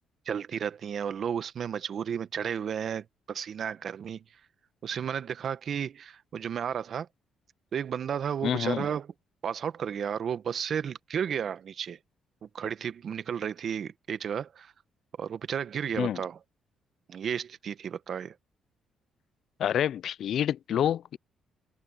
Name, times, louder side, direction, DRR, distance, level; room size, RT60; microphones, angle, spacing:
voice 1, 0.3-4.2 4.8-7.1 7.7-9.1 9.4-12.0 12.5-14.7 15.2-16.4 17.1-18.3, right 8 dB, 55° right, 1.1 m, -33 dB
voice 2, 8.4-8.9 16.0-16.2 19.6-21.2, left 10 dB, 70° left, 0.4 m, -28 dB
cardioid pair, 90°, 0 cm